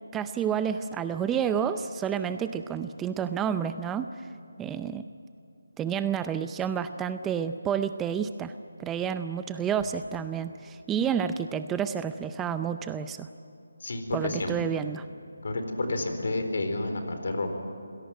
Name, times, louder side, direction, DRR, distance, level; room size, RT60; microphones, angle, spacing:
voice 1, 0.1-4.3 4.6-5.1 5.8-8.5 8.8-13.3 14.1-15.1, right 8 dB, 10° right, 10 dB, 0.5 m, -30 dB
voice 2, 13.8-14.5 15.4-17.5, left 2 dB, 65° left, 6 dB, 4.3 m, -30 dB
26.5 x 17.5 x 9.1 m, 2.8 s
figure-of-eight pair, 160°, 0 cm